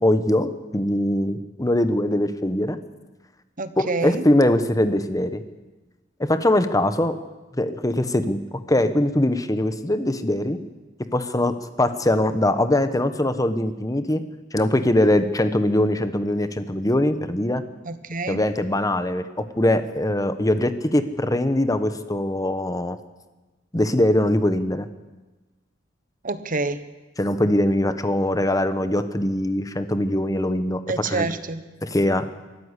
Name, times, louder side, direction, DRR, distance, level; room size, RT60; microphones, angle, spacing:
voice 1, 0.0-2.8 3.8-5.4 6.2-7.2 7.5-8.4 8.7-10.6 11.1-14.2 14.5-17.6 18.3-23.0 23.7-24.9 27.2-31.3 31.8-32.2, left 1 dB, 20° left, 1.1 m, -22 dB
voice 2, 3.6-4.2 17.8-18.4 26.2-26.8 30.9-31.6, right 3 dB, 45° right, 1.1 m, -27 dB
23.5 x 13.5 x 8.2 m
head